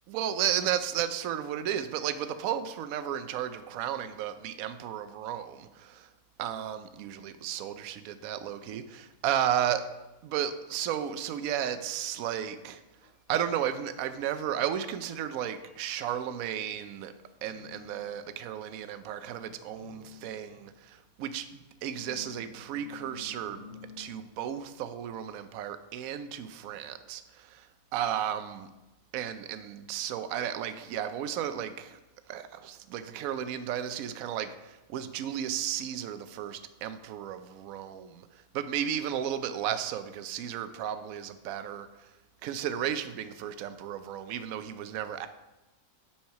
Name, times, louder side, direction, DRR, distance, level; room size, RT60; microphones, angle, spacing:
voice 1, 0.1-6.1 6.4-9.8 10.2-12.8 13.3-17.1 17.4-23.7 24.0-27.7 27.9-28.7 29.1-32.0 32.3-38.3 38.5-42.1 42.4-45.3, right 10 dB, 75° right, 11 dB, 1.0 m, -34 dB
sound 1, 9.4-9.9 10.3-10.9 11.3-11.9 12.2-12.7 13.0-15.3 15.6-16.0 16.8-18.9 19.2-21.3 21.9-24.1, left 5 dB, 70° left, 2.1 m, -53 dB
8.5 x 4.5 x 5.7 m, 1.0 s
omnidirectional pair, 1.6 m